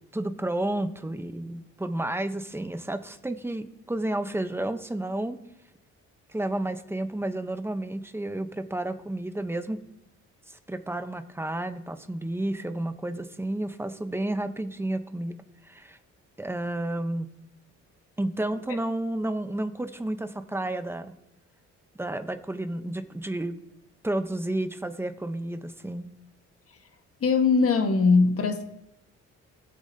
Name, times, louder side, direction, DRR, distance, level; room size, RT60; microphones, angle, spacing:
voice 1, 0.1-5.4 6.3-9.8 10.5-16.0 16.4-17.3 18.2-21.1 22.0-23.6 24.0-26.1, right 1 dB, 10° right, 0.8 m, -31 dB
voice 2, 27.2-28.6, left 4 dB, 50° left, 1.5 m, -21 dB
18.0 x 7.7 x 2.8 m
cardioid pair, 90°, 30 cm